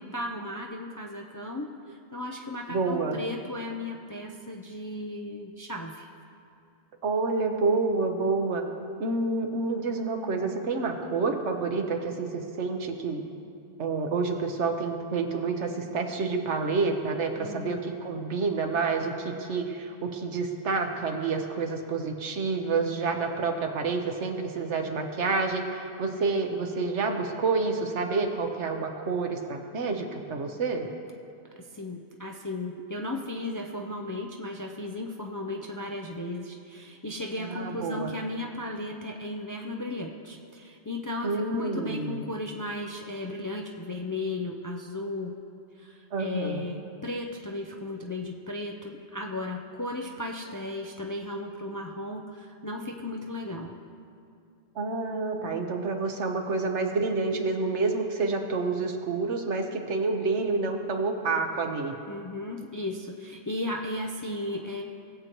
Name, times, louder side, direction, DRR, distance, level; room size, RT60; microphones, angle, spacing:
voice 1, 0.1-1.7 2.1-6.1 17.4-17.8 31.8-45.4 46.2-53.8 62.1-64.8, left 2 dB, 30° left, 1 dB, 0.4 m, -35 dB
voice 2, 2.7-3.2 7.0-8.6 9.0-13.2 13.8-30.9 37.4-38.1 41.2-42.3 46.1-46.6 54.7-61.9, right 4 dB, 85° right, 4 dB, 1.3 m, -28 dB
19.0 x 7.8 x 3.0 m, 2.5 s
omnidirectional pair, 1.2 m